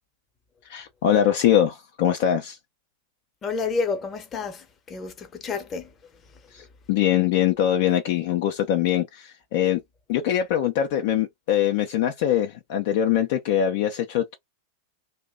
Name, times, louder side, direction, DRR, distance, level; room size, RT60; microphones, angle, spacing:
voice 1, 0.7-2.6 6.5-6.6 6.9-9.8 10.1-14.4, left 10 dB, 50° left, 0.5 m, -22 dB
voice 2, 3.4-5.9, left 4 dB, 25° left, 0.8 m, -30 dB
2.7 x 2.1 x 3.6 m
figure-of-eight pair, 90°, 0 cm